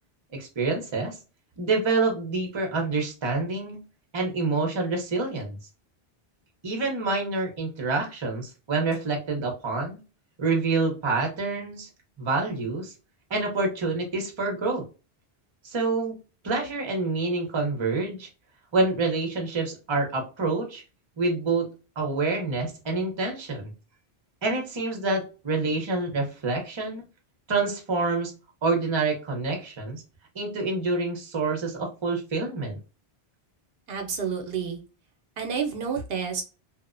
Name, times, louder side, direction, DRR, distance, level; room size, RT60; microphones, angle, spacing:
voice 1, 0.3-1.2 1.6-3.8 4.1-5.6 6.6-10.0 10.4-11.9 12.2-12.9 13.3-14.8 15.6-16.2 16.4-18.3 18.7-20.8 21.2-21.7 22.0-23.7 24.4-27.0 27.5-28.3 28.6-30.0 30.3-32.8, right 3 dB, 30° right, 1 dB, 0.7 m, -27 dB
voice 2, 33.9-34.8 35.4-36.4, right 6 dB, 75° right, 4 dB, 0.8 m, -29 dB
2.7 x 2.0 x 2.4 m, 0.32 s
omnidirectional pair, 1.0 m